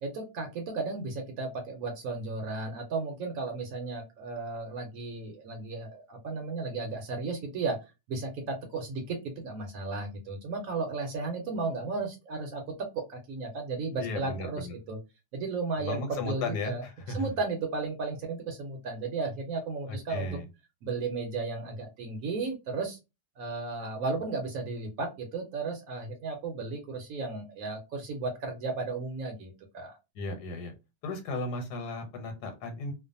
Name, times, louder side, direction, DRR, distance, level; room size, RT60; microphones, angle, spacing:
voice 1, 0.0-7.8 8.1-15.0 15.3-16.8 17.1-20.3 20.8-23.0 23.4-29.9, right 3 dB, 70° right, 2 dB, 1.0 m, -34 dB
voice 2, 14.0-14.7 15.8-17.3 19.9-20.5 30.1-30.7 31.0-32.9, left 3 dB, 90° left, 6 dB, 1.3 m, -35 dB
2.5 x 2.4 x 2.5 m, 0.25 s
omnidirectional pair, 1.7 m